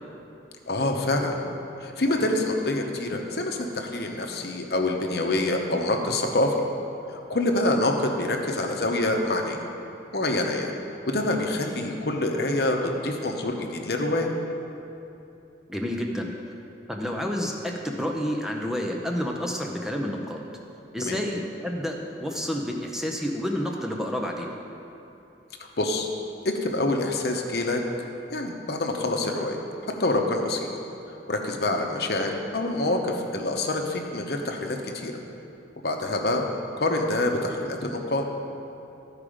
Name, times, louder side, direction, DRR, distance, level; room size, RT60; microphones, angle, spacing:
voice 1, 0.7-1.4 1.8-6.5 7.1-9.6 10.1-10.7 11.1-14.3 21.0-21.2 25.8-26.1 26.4-27.8 28.3-29.6 30.0-30.7 31.3-35.1 35.8-36.4 36.8-38.2, left 2 dB, 60° left, 2 dB, 0.9 m, -26 dB
voice 2, 15.7-16.3 16.9-20.5 20.9-24.6, equal, 5° right, 0 dB, 0.6 m, -29 dB
13.5 x 4.9 x 5.0 m, 2.8 s
head